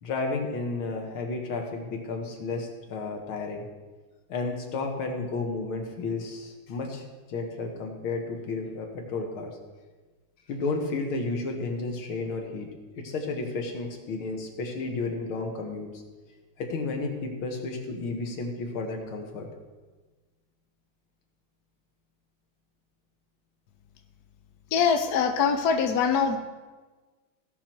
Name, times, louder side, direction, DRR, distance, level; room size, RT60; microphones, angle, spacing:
voice 1, 0.0-3.6 4.3-7.0 7.3-9.6 10.5-12.7 13.0-15.9 16.6-19.5, left 3 dB, 90° left, 2 dB, 2.2 m, -32 dB
voice 2, 24.7-26.4, left 6 dB, 60° left, 6 dB, 1.1 m, -23 dB
16.5 x 6.0 x 4.5 m, 1.3 s
omnidirectional pair, 2.2 m